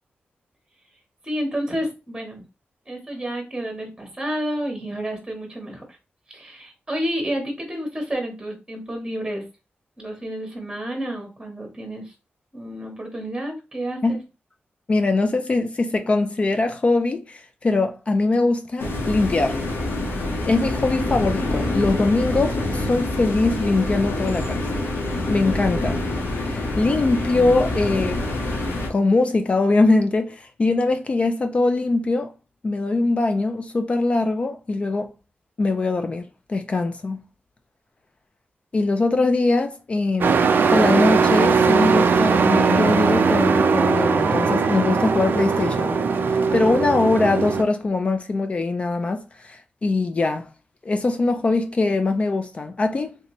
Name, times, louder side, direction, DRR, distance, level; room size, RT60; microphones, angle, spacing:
voice 1, 1.2-2.4 2.9-6.0 6.3-9.4 10.0-12.1 12.5-14.2, equal, 10° right, 0.9 m, -30 dB
voice 2, 14.9-19.6 20.4-24.6 25.3-26.0 26.4-28.2 28.9-32.3 32.6-35.1 35.6-37.2 38.7-40.4 40.7-46.0 46.2-50.5 50.8-53.2, left 3 dB, 30° left, 0.3 m, -22 dB
sound 1, 18.8-28.9, left 1 dB, 85° left, 1.0 m, -26 dB
Truck, 40.2-47.6, right 5 dB, 55° right, 0.3 m, -19 dB
3.2 x 2.8 x 3.0 m
wide cardioid pair, 175°, 4 cm